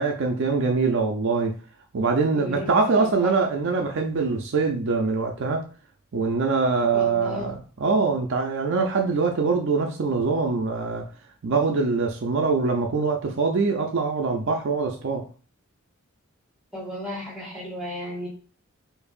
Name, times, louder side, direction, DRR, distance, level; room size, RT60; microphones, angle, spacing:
voice 1, 0.0-1.5 1.9-5.6 6.1-11.0 11.4-15.2, right 4 dB, 60° right, 0.5 m, -23 dB
voice 2, 2.3-2.7 3.0-3.3 6.9-7.5 16.7-18.3, equal, 5° right, 1.6 m, -34 dB
4.7 x 2.6 x 2.4 m
head